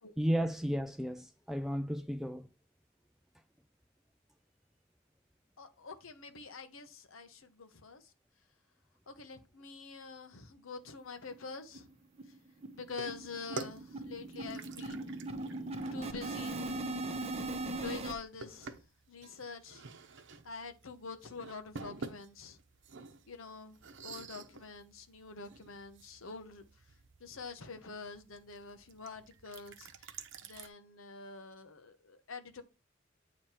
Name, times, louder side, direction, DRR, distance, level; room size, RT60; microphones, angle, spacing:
voice 1, 0.2-2.5, equal, ahead, 0.3 m, -33 dB
voice 2, 5.6-8.1 9.1-11.9 12.7-15.1 15.9-16.6 17.7-18.8 19.1-19.8 20.4-22.6 23.3-26.6 27.2-29.9 30.4-32.6, left 4 dB, 80° left, 1.0 m, -46 dB
sound 1, 10.9-11.0 11.3-11.4 11.7-11.9 12.2-18.1, right 2 dB, 30° right, 0.9 m, -39 dB
sound 2, 12.9-30.7, right 4 dB, 65° right, 0.9 m, -50 dB
9.1 x 3.2 x 4.4 m
head